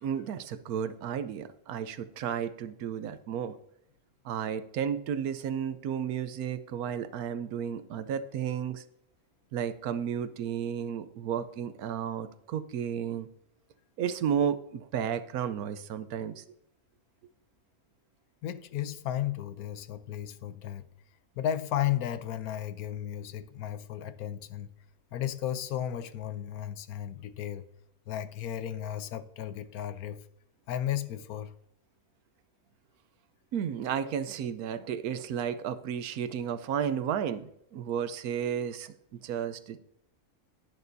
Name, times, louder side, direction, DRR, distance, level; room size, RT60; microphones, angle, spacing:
voice 1, 0.0-3.6 4.2-8.8 9.5-13.3 14.0-16.4 33.5-39.8, right 8 dB, 85° right, 1.2 m, -33 dB
voice 2, 18.4-20.9 21.4-24.7 25.1-27.7 28.1-30.2 30.7-31.5, left 11 dB, 80° left, 1.1 m, -34 dB
11.0 x 9.9 x 2.7 m
omnidirectional pair, 1.5 m